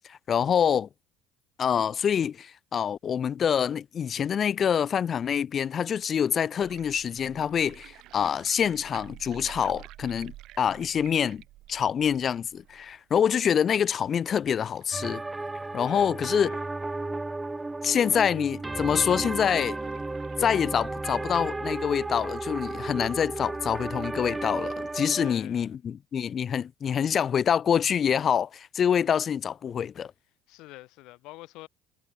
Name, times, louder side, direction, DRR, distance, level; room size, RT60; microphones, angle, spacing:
voice 1, 0.1-0.9 1.6-10.3 10.6-11.4 11.7-15.2 15.7-16.5 17.8-19.8 20.4-30.1, left 8 dB, 40° left, 0.3 m, -26 dB
sound 1, 6.6-17.6 18.0-18.1 18.3-18.4 19.0-24.1, right 16 dB, 65° right, 1.0 m, -51 dB
sound 2, 14.9-25.3, right 2 dB, 15° right, 0.9 m, -34 dB
voice 2, 15.8-16.7 25.2-25.7 30.5-31.7, left 20 dB, 70° left, 2.9 m, -47 dB
supercardioid pair, 85°, 0 cm